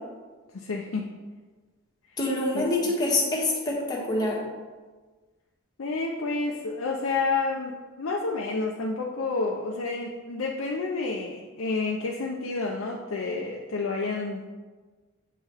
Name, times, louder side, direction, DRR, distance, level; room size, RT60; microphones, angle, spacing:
voice 1, 0.5-1.1 2.5-2.7 5.8-14.5, left 3 dB, 75° left, -1 dB, 0.6 m, -29 dB
voice 2, 2.2-4.4, left 2 dB, 20° left, -4 dB, 1.3 m, -26 dB
8.2 x 4.5 x 3.4 m, 1.3 s
head